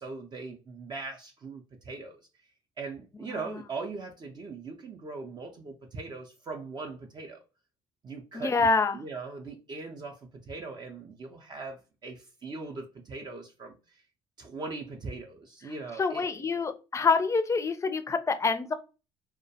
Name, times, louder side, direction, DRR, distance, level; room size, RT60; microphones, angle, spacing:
voice 1, 0.0-2.2 2.8-7.4 8.0-14.0 14.4-16.5, right 3 dB, 40° right, 0.5 m, -40 dB
voice 2, 8.3-9.0 16.0-18.7, left 4 dB, 25° left, 0.4 m, -26 dB
2.2 x 2.1 x 2.7 m
supercardioid pair, 70°, 11 cm